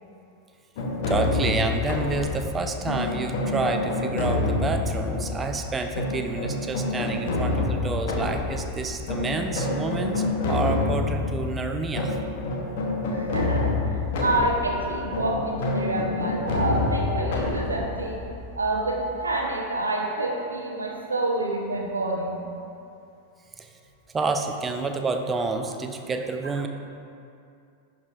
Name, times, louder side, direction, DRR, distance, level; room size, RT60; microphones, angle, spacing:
sound 1, 0.8-19.5, left 2 dB, 50° left, 0.9 m, -28 dB
voice 1, 1.1-12.2 23.6-23.7 24.1-26.7, right 3 dB, 15° right, 5 dB, 0.5 m, -29 dB
voice 2, 13.1-13.7 14.2-18.2 18.5-22.4, right 2 dB, 80° right, 0 dB, 0.9 m, -27 dB
10.5 x 4.9 x 2.5 m, 2.5 s
figure-of-eight pair, 90°, 0 cm